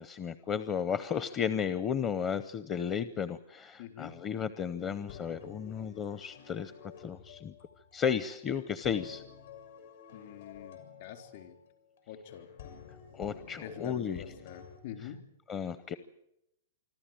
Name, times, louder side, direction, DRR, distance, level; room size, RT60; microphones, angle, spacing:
voice 1, 0.0-7.5 7.9-9.2 13.1-14.2 15.5-16.0, left 7 dB, 25° left, 14 dB, 0.7 m, -34 dB
voice 2, 3.8-4.2 10.1-11.5 12.1-12.5 13.6-15.2, left 9 dB, 60° left, 7 dB, 3.7 m, -45 dB
sound 1, 4.6-14.8, left 7 dB, 80° left, 6.3 m, -51 dB
26.0 x 13.0 x 9.0 m, 0.83 s
hypercardioid pair, 140°, 0 cm